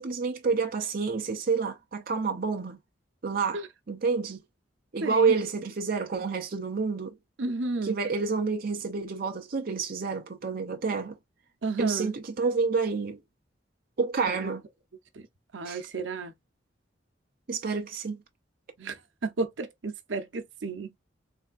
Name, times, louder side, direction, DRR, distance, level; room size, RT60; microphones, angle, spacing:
voice 1, 0.0-2.8 3.2-4.4 4.9-7.2 7.8-11.2 11.8-13.2 14.0-14.6 15.6-15.8 17.5-18.2, right 5 dB, 50° right, 0.6 m, -29 dB
voice 2, 5.0-5.3 7.4-8.0 11.6-12.1 14.3-14.5 15.1-15.3 15.5-16.3 18.8-21.0, right 3 dB, 80° right, 0.7 m, -33 dB
3.4 x 3.3 x 2.4 m
head